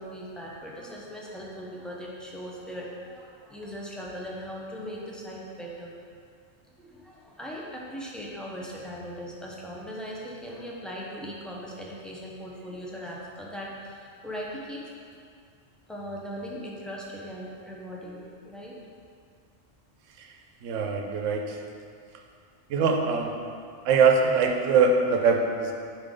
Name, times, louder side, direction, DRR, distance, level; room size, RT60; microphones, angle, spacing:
voice 1, 0.0-5.9 6.8-14.8 15.9-18.7, equal, ahead, -4 dB, 0.4 m, -39 dB
voice 2, 20.6-21.6 22.7-23.3 23.8-25.7, right 5 dB, 80° right, 3 dB, 1.0 m, -23 dB
4.9 x 3.7 x 5.1 m, 2.2 s
omnidirectional pair, 1.3 m